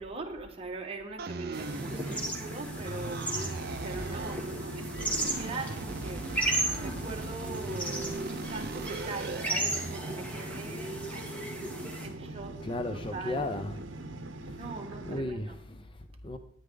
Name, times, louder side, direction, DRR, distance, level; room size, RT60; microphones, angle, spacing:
voice 1, 0.0-3.5 3.8-12.6 12.9-13.5 14.5-15.6, right 3 dB, 30° right, 1.5 m, -42 dB
sound 1, 1.2-2.5 2.8-4.5 4.9-10.1, right 3 dB, 50° right, 0.6 m, -40 dB
sound 2, 1.5-12.1, right 1 dB, 5° left, 2.0 m, -35 dB
sound 3, 1.5-15.2, right 1 dB, 65° right, 1.0 m, -41 dB
voice 2, 12.6-13.7 14.4-14.6 15.0-16.4, left 2 dB, 25° left, 0.6 m, -35 dB
12.5 x 10.0 x 3.9 m
head